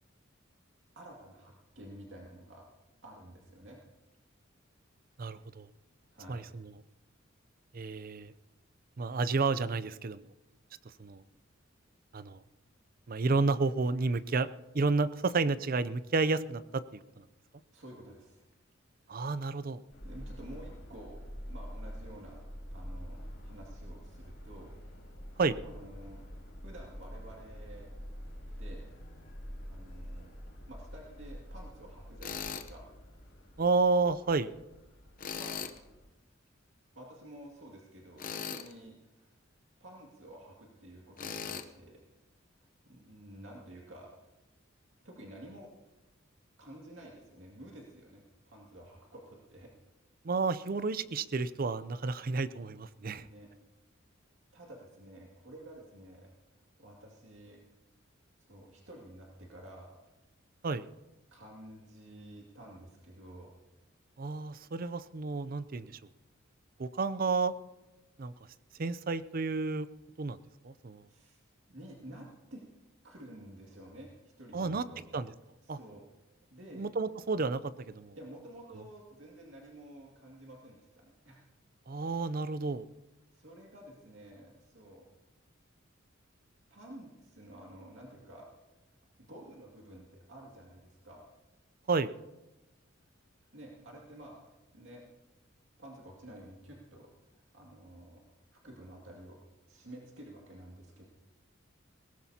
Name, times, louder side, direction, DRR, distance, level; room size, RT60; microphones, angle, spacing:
voice 1, 1.0-2.6 3.0-3.8 6.1-6.4 17.7-18.4 20.0-21.2 21.5-22.4 22.7-24.7 25.6-26.2 26.6-27.9 28.6-28.9 29.7-30.3 30.7-32.8 35.2-35.6 37.0-39.3 39.8-42.0 42.6-44.1 45.0-45.7 46.6-49.7 53.1-53.5 54.5-56.3 56.8-57.6 58.4-59.9 61.3-63.5 71.1-71.4 71.7-72.6 73.0-75.0 75.6-76.0 76.5-76.9 78.2-81.4 83.3-85.0 86.7-88.5 89.2-91.3 93.5-94.5 94.7-95.0 95.8-98.2 98.5-99.4 99.7-101.1, right 1 dB, 70° right, -2 dB, 2.3 m, -51 dB
voice 2, 5.2-5.7 6.3-6.7 7.7-8.3 9.0-10.2 11.0-11.2 12.1-12.4 13.1-14.5 14.7-17.2 19.1-19.8 25.4-25.6 33.6-34.5 50.2-53.3 60.6-60.9 64.2-66.0 66.8-67.5 68.2-68.3 68.8-69.9 70.2-70.4 70.6-71.1 74.5-74.8 75.1-75.3 75.7-75.8 76.7-77.6 77.9-78.2 81.9-82.9 91.9-92.1, right 4 dB, 45° right, 14 dB, 0.5 m, -31 dB
Subway metro underground, 19.9-36.0, equal, 75° left, 4.3 m, -46 dB
Tools, 32.2-32.7 35.2-35.8 38.2-38.7 41.2-41.7, left 6 dB, 45° left, 0.8 m, -38 dB
21.0 x 18.0 x 2.8 m, 1.0 s
head